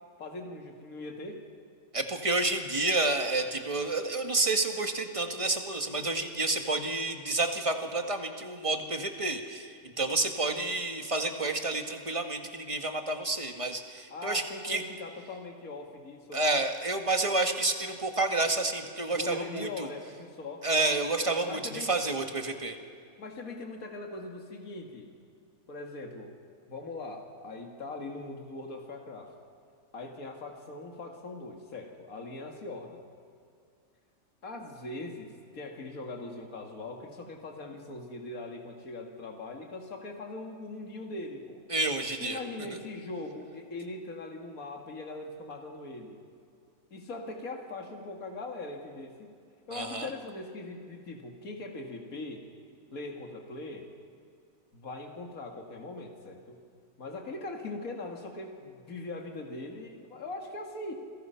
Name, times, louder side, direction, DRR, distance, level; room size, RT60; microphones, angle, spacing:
voice 1, 0.2-1.4 14.1-16.5 19.1-20.6 21.5-21.9 23.2-25.1 25.7-26.3 26.7-29.3 29.9-33.0 34.4-41.6 42.2-46.2 46.9-49.3 49.7-52.4 52.9-53.9 54.7-56.6 57.0-60.9, left 2 dB, 65° left, 2 dB, 2.5 m, -41 dB
voice 2, 1.9-14.8 16.3-19.9 20.6-22.8 41.7-42.4 49.7-50.1, right 2 dB, 20° right, 5 dB, 1.7 m, -29 dB
29.5 x 22.0 x 5.8 m, 2.3 s
omnidirectional pair, 1.6 m